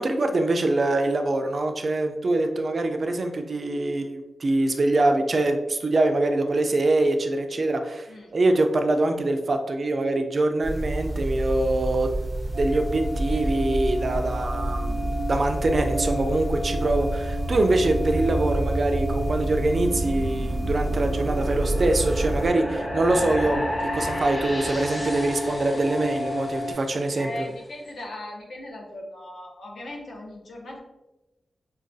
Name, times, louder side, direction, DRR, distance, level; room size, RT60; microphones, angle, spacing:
voice 1, 0.0-8.1 8.3-12.2 12.6-23.6 23.9-27.5, right 2 dB, 40° right, 5 dB, 0.3 m, -24 dB
sound 1, 10.6-22.5, right 1 dB, 15° left, 0.5 m, -28 dB
sound 2, 12.5-26.7, equal, 90° right, 0.5 m, -34 dB
sound 3, 18.5-27.4, equal, 35° left, 1.2 m, -34 dB
voice 2, 27.2-30.8, left 1 dB, 70° left, -1 dB, 0.8 m, -38 dB
4.8 x 2.2 x 2.6 m, 0.98 s
wide cardioid pair, 180°, 0 cm